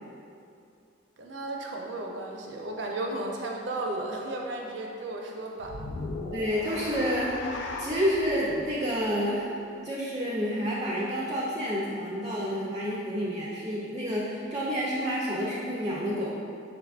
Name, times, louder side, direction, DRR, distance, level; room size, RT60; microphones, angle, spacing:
voice 1, 1.2-5.8, right 2 dB, 70° right, 0 dB, 0.5 m, -34 dB
sound 1, 5.6-9.9, left 3 dB, 75° left, 0.4 m, -39 dB
voice 2, 6.3-7.3 7.8-9.5 9.8-16.3, equal, 20° right, -6 dB, 0.4 m, -29 dB
5.7 x 3.5 x 2.4 m, 2.6 s
head